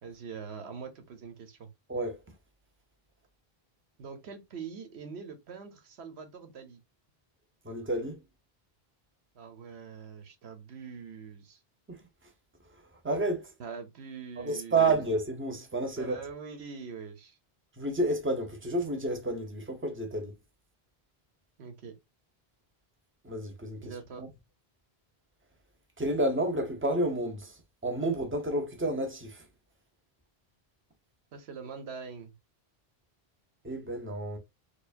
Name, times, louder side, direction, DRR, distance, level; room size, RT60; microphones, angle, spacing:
voice 1, 0.0-1.7 4.0-6.8 9.3-11.6 13.6-14.9 16.0-17.4 21.6-21.9 23.8-24.2 31.3-32.3, right 5 dB, 85° right, 1.1 m, -43 dB
voice 2, 7.6-8.2 11.9-12.0 13.0-13.5 14.4-16.2 17.8-20.3 23.2-23.9 24.2-24.3 26.0-29.4 33.6-34.4, right 2 dB, 15° right, 0.7 m, -30 dB
4.6 x 2.4 x 2.5 m
omnidirectional pair, 1.1 m